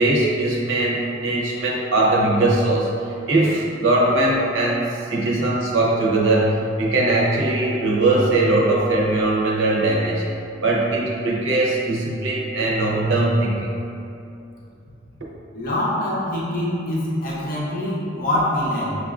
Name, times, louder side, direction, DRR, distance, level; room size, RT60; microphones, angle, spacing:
voice 1, 0.0-10.3 10.6-13.7, right 2 dB, 65° right, -3 dB, 0.6 m, -20 dB
voice 2, 15.5-18.9, left 1 dB, 40° left, -7 dB, 0.6 m, -24 dB
6.2 x 2.4 x 2.4 m, 2.7 s
head